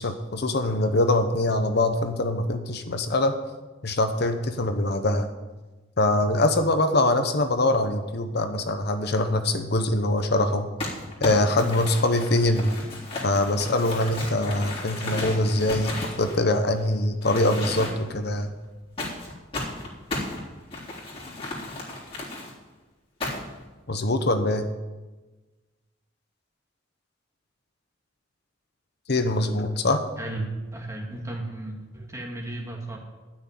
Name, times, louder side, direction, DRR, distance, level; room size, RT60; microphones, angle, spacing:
voice 1, 0.0-3.4 3.8-5.3 6.0-10.7 11.2-12.7 13.2-18.5 23.9-24.6 29.1-30.0, left 2 dB, 60° left, 8 dB, 0.9 m, -23 dB
Crumpling crinkling, 10.8-16.8 17.2-18.2 19.0-22.5 23.2-23.6, left 2 dB, 30° left, 3.4 m, -34 dB
voice 2, 30.7-33.0, right 2 dB, 15° right, 0 dB, 2.4 m, -34 dB
12.0 x 6.3 x 9.4 m, 1.2 s
head